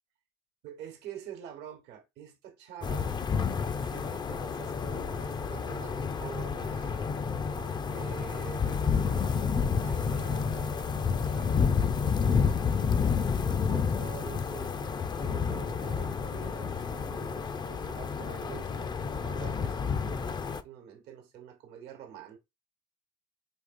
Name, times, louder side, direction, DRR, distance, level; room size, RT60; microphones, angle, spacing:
voice 1, 0.6-3.2 3.8-7.1 7.5-11.8 12.2-12.6 13.4-20.4 20.6-22.4, right 10 dB, 85° right, 1.0 m, -47 dB
sound 1, 2.8-20.6, left 6 dB, 25° left, 0.4 m, -30 dB
5.1 x 3.0 x 2.5 m
cardioid pair, 110°, 17 cm